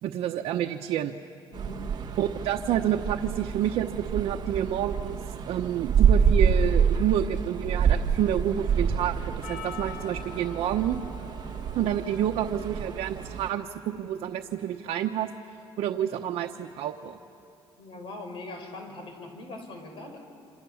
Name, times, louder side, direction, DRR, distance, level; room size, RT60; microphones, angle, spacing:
voice 1, 0.0-1.1 2.2-5.2 5.5-11.0 11.7-15.3 15.8-17.2, right 10 dB, 85° right, 2 dB, 1.0 m, -29 dB
voice 2, 1.5-1.9 17.8-20.2, left 2 dB, 55° left, 5 dB, 5.1 m, -41 dB
sound 1, 1.5-13.5, right 6 dB, 45° right, 1.5 m, -27 dB
Percussion, 9.4-13.7, left 8 dB, 85° left, 3.5 m, -46 dB
28.5 x 26.5 x 7.2 m, 3.0 s
cardioid pair, 150°, 10 cm